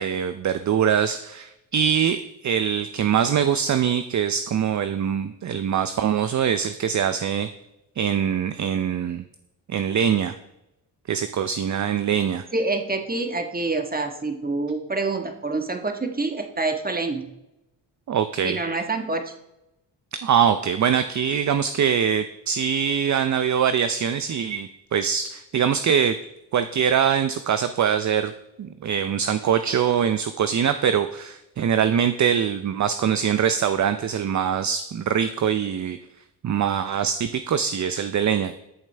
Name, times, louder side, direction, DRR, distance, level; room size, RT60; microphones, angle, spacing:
voice 1, 0.0-7.5 8.0-9.2 9.7-10.3 11.1-12.4 18.1-18.6 20.2-26.2 26.5-28.3 28.6-36.0 36.4-38.5, right 8 dB, 40° right, 10 dB, 0.6 m, -23 dB
voice 2, 12.5-17.3 18.4-19.3, right 3 dB, 20° right, 5 dB, 1.5 m, -27 dB
14.0 x 7.4 x 3.4 m, 0.91 s
supercardioid pair, 60°, 46 cm